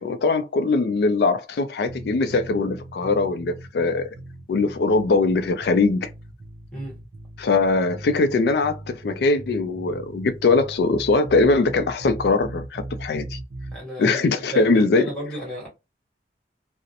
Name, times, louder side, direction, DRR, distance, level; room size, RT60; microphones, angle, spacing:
voice 1, 0.0-4.1 4.5-6.1 7.4-13.4 14.0-15.0, left 3 dB, 70° left, 0.3 m, -21 dB
sound 1, 1.9-13.8, right 1 dB, 65° right, 0.5 m, -39 dB
voice 2, 13.7-15.7, right 1 dB, 5° left, 1.2 m, -33 dB
2.4 x 2.0 x 2.7 m
head